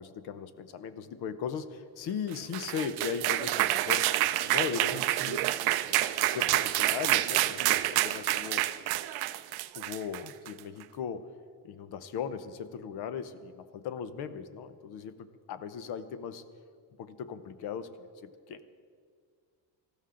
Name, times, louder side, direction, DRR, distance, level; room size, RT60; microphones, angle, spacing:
voice 1, 0.0-4.1 4.4-5.5 5.9-8.6 9.7-11.3 11.6-16.4 17.0-17.9 18.2-18.7, left 7 dB, 55° left, 12 dB, 0.8 m, -38 dB
sound 1, 2.3-10.6, right 15 dB, 55° right, 0.5 m, -28 dB
18.5 x 14.5 x 3.8 m, 2.1 s
cardioid pair, 175°, 47 cm